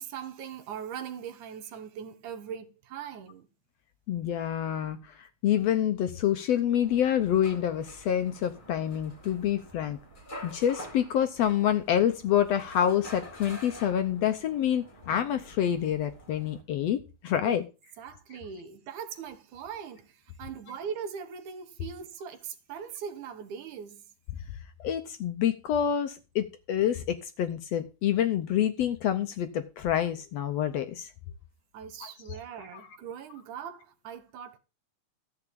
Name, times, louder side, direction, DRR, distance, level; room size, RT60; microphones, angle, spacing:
voice 1, 0.0-3.5 17.4-17.6 18.0-24.0 31.7-34.6, right 7 dB, 75° right, 2.6 m, -40 dB
voice 2, 4.1-10.0 10.4-17.6 24.8-31.1 32.0-32.1 32.7-32.8, left 10 dB, 70° left, 1.6 m, -27 dB
sound 1, 6.8-16.6, equal, 15° left, 2.5 m, -48 dB
13.5 x 4.8 x 8.5 m
omnidirectional pair, 3.6 m